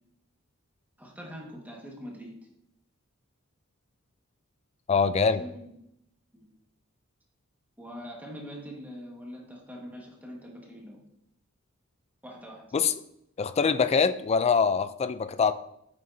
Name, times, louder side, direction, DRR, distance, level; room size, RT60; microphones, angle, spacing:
voice 1, 1.0-2.4 5.4-5.7 6.3-6.5 7.8-11.0 12.2-12.6, equal, 10° right, -2 dB, 1.5 m, -43 dB
voice 2, 4.9-5.4 12.7-12.9 13.4-15.5, left 5 dB, 30° left, 13 dB, 0.3 m, -24 dB
8.8 x 6.6 x 2.7 m, 0.77 s
head